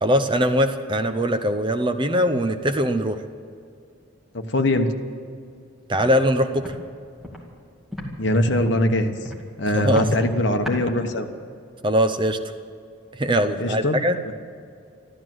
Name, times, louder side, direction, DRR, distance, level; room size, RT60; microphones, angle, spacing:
voice 1, 0.0-3.2 5.9-6.7 9.7-10.0 11.8-12.4 13.2-14.2, equal, 25° right, 8 dB, 0.7 m, -21 dB
voice 2, 4.3-4.9 8.2-9.1 9.6-11.3 13.6-14.0 14.2-14.3, left 1 dB, 55° left, 6 dB, 1.2 m, -22 dB
Walk footsteps, 5.9-6.1 6.6-6.8 7.2-7.4 7.9-8.1 8.5-8.8 9.2-9.4 9.8-10.1 10.6-10.8, equal, ahead, 2.3 m, -33 dB
14.0 x 13.0 x 7.8 m, 2.4 s
head